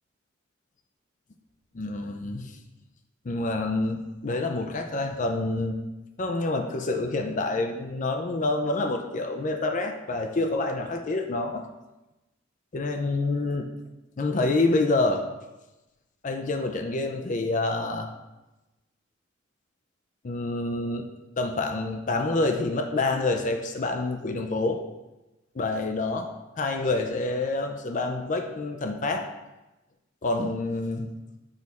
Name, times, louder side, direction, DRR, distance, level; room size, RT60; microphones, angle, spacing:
voice 1, 1.7-2.5 3.2-5.8 6.2-11.7 12.7-13.7 14.2-15.2 16.2-18.1 20.2-21.1 21.4-24.8 25.5-29.3 30.2-31.1, left 2 dB, 40° left, 5 dB, 0.5 m, -27 dB
6.3 x 4.9 x 4.1 m, 1.0 s
head